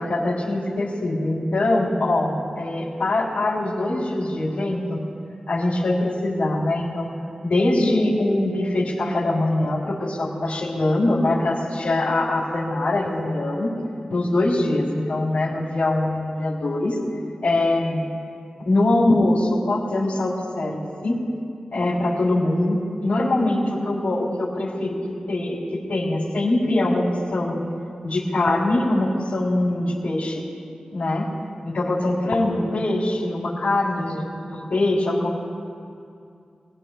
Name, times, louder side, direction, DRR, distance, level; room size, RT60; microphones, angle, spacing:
voice 1, 0.0-5.0 5.5-7.1 7.4-13.7 14.1-16.9 17.4-18.0 18.6-21.2 21.7-25.0 25.3-27.6 28.0-30.4 30.9-31.3 31.6-34.2 34.5-35.4, left 2 dB, 85° left, -7 dB, 3.1 m, -23 dB
26.0 x 19.5 x 2.3 m, 2.4 s
wide cardioid pair, 110°, 2 cm